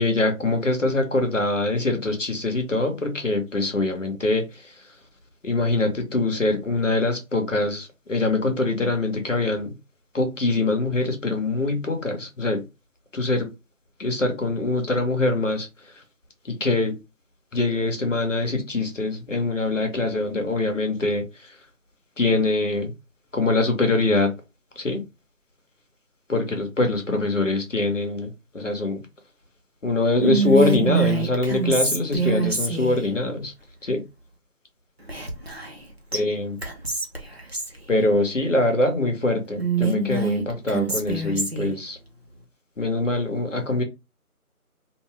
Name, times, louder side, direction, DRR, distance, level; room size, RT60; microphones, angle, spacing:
voice 1, 0.0-4.5 5.4-9.7 10.1-12.6 13.1-13.5 14.0-15.7 16.5-17.0 17.5-21.2 22.2-22.9 23.3-24.3 24.8-25.0 26.3-28.3 28.5-29.0 29.8-33.5 33.8-34.0 36.1-36.6 37.9-42.0 42.8-43.8, left 2 dB, 55° left, 0.9 m, -23 dB
Whispering, 30.2-33.0 35.1-35.8 36.1-36.2 36.6-37.8 39.6-41.7, right 3 dB, 45° right, 0.6 m, -25 dB
2.6 x 2.3 x 3.3 m
figure-of-eight pair, 180°, 44 cm